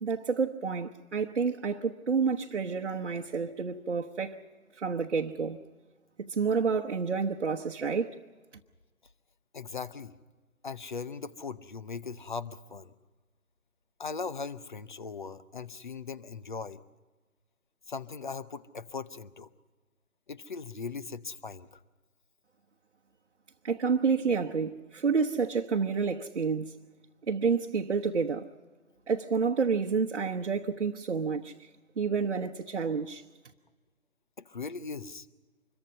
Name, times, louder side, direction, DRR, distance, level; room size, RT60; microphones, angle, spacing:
voice 1, 0.0-4.4 4.8-5.6 6.2-8.2 23.6-26.7 27.3-28.5 29.1-31.7 32.0-33.2, right 5 dB, 50° right, 1.1 m, -29 dB
voice 2, 9.5-10.1 10.6-12.9 14.0-16.8 17.9-19.5 20.3-21.8 34.4-35.3, left 5 dB, 35° left, 0.7 m, -39 dB
26.0 x 22.5 x 5.4 m
figure-of-eight pair, 155°, 42 cm